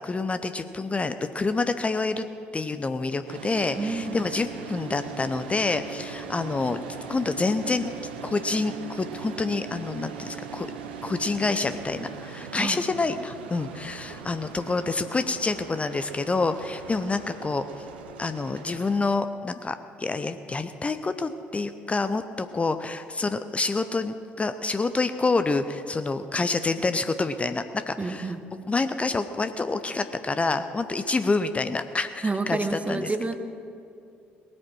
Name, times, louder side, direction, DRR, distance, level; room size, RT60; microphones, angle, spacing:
voice 1, 0.0-2.3 2.5-6.8 7.1-7.9 8.2-10.7 11.0-17.9 18.2-28.4 28.7-33.1, left 3 dB, 20° left, 10 dB, 0.6 m, -27 dB
sound 1, 3.3-19.0, right 7 dB, 75° right, 0.9 m, -40 dB
voice 2, 3.8-4.2 12.6-12.8 28.0-28.4 32.2-33.4, right 3 dB, 25° right, 9 dB, 1.1 m, -29 dB
19.0 x 8.6 x 6.1 m, 2.5 s
figure-of-eight pair, 50°, 6 cm